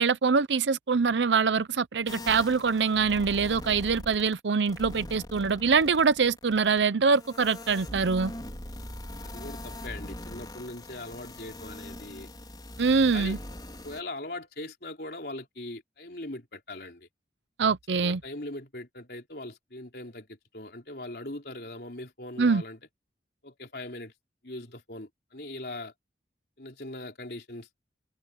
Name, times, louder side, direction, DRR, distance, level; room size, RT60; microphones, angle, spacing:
voice 1, 0.0-8.3 12.8-13.4 17.6-18.2 22.4-22.6, right 5 dB, 90° right, 0.7 m, -24 dB
sound 1, 2.1-4.4 4.6-14.0, left 1 dB, 25° left, 4.5 m, -41 dB
voice 2, 9.2-12.3 13.1-13.4 13.8-17.1 18.0-22.8 23.4-24.1 24.4-25.9 26.6-27.7, left 2 dB, 65° left, 3.7 m, -40 dB
head